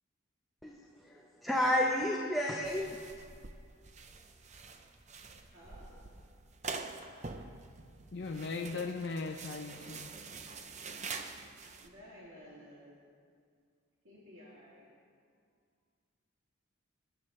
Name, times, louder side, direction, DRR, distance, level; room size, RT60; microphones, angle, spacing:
voice 1, 0.6-3.0, left 1 dB, ahead, -3 dB, 0.8 m, -31 dB
sound 1, 2.6-11.9, right 4 dB, 35° right, 0.6 m, -46 dB
voice 2, 5.4-6.0 11.8-12.9 14.0-14.9, equal, 65° right, -8 dB, 2.8 m, -54 dB
voice 3, 8.1-10.1, left 4 dB, 55° left, 4 dB, 0.6 m, -38 dB
24.5 x 10.0 x 3.2 m, 2.2 s
head